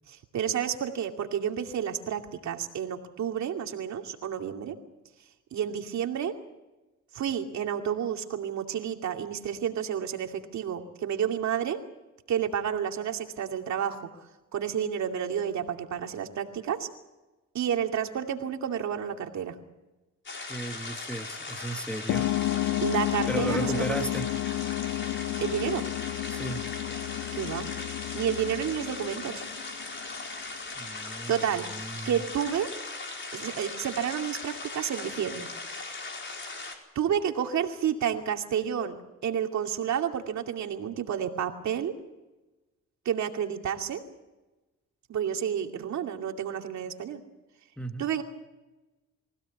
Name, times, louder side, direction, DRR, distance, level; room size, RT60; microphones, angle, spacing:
voice 1, 0.1-4.8 5.5-6.3 7.1-11.8 12.3-14.1 14.5-16.9 17.5-19.5 22.8-24.1 25.4-25.8 27.3-27.7 28.1-29.4 31.3-31.6 32.0-32.7 33.3-35.5 37.0-41.9 43.0-44.0 45.1-47.2 48.0-48.2, right 8 dB, 65° right, 4 dB, 2.5 m, -30 dB
sound 1, 20.3-36.8, left 3 dB, 40° left, 4.9 m, -39 dB
voice 2, 20.5-22.3 23.3-24.3 26.3-26.6 30.8-32.1 47.8-48.1, right 1 dB, 5° left, 5 dB, 1.5 m, -35 dB
sound 2, 22.1-30.2, left 16 dB, 75° left, 0.8 m, -31 dB
24.0 x 16.5 x 8.5 m, 1.1 s
cardioid pair, 90°, 30 cm